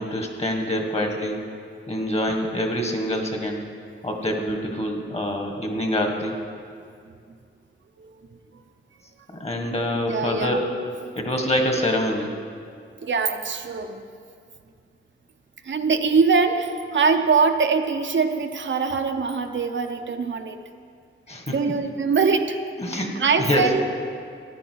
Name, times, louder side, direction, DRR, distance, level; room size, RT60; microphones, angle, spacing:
voice 1, 0.0-1.4 1.9-3.7 4.0-6.4 9.3-10.7 11.1-12.4 21.3-21.8 22.8-23.8, left 1 dB, 30° left, 3 dB, 1.7 m, -26 dB
voice 2, 10.1-10.6 11.0-11.1 13.0-14.0 15.6-20.6 21.5-22.6 22.9-23.9, right 5 dB, 60° right, 6 dB, 0.7 m, -23 dB
14.5 x 10.0 x 4.6 m, 2.2 s
wide cardioid pair, 95°, 21 cm